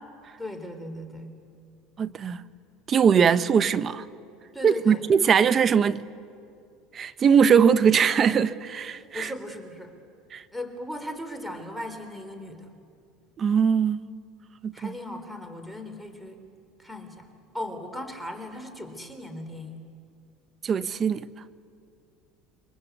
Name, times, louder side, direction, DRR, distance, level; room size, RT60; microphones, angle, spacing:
voice 1, 0.4-1.3 4.5-5.1 9.1-9.9 10.5-12.7 14.7-16.4 16.8-17.3 17.5-19.8, left 1 dB, ahead, 4.0 m, -37 dB
voice 2, 2.0-2.4 2.9-4.0 4.6-6.0 6.9-9.3 10.3-10.4 13.4-14.0 14.6-14.9 20.6-21.2, right 7 dB, 35° right, 1.0 m, -21 dB
29.5 x 23.5 x 8.3 m
supercardioid pair, 95°, 0 cm